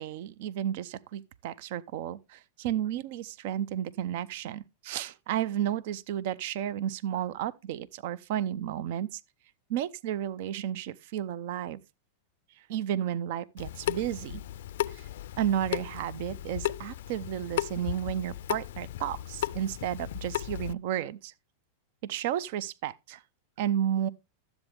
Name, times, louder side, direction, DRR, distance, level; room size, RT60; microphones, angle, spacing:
voice 1, 0.0-9.2 9.7-11.8 12.7-14.4 14.9-15.1 15.4-21.3 22.0-23.2 23.6-24.1, right 10 dB, 60° right, 0.6 m, -32 dB
Water tap faucet / Sink (filling or washing) / Drip, 13.6-20.7, left 13 dB, 75° left, 0.4 m, -35 dB
12.5 x 8.0 x 3.4 m
hypercardioid pair, 130°, 0 cm